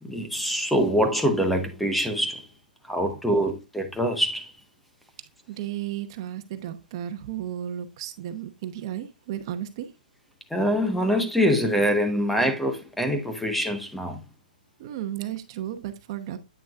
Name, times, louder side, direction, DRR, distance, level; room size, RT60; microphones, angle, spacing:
voice 1, 0.0-2.5 2.8-4.5 10.5-14.2, equal, ahead, 0.6 m, -24 dB
voice 2, 5.5-9.9 14.8-16.4, right 11 dB, 30° right, 0.9 m, -34 dB
8.9 x 6.1 x 2.4 m
hypercardioid pair, 165°, 5 cm